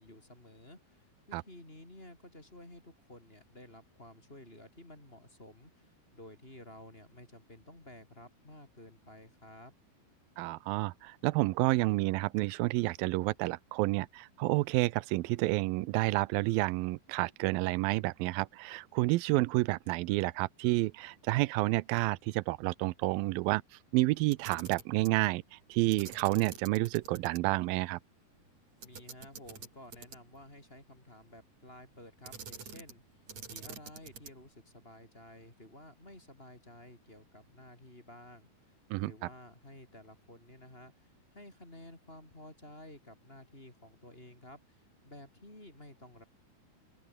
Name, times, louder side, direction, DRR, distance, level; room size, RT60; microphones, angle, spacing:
voice 1, 0.0-9.7 28.8-38.8 39.0-46.2, left 1 dB, 15° left, 4.7 m, -53 dB
voice 2, 10.4-23.6 23.9-28.0 38.9-39.1, right 20 dB, 80° right, 2.2 m, -30 dB
Camera, 24.2-25.2 25.9-27.4 27.7-27.8 28.8-30.4 32.2-33.0 33.3-34.5, right 6 dB, 45° right, 4.6 m, -47 dB
open air
omnidirectional pair, 4.6 m